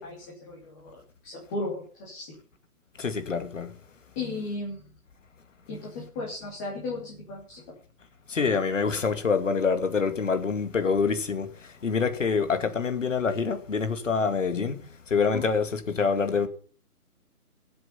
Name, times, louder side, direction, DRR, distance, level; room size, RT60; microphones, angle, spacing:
voice 1, 0.0-0.9 1.2-2.3 4.1-4.9 5.7-7.6 15.3-15.4, left 2 dB, 10° left, 2.9 m, -35 dB
voice 2, 3.0-3.7 8.3-11.5 11.8-16.5, left 5 dB, 55° left, 2.4 m, -26 dB
19.0 x 7.9 x 5.7 m
hypercardioid pair, 170°, 45 cm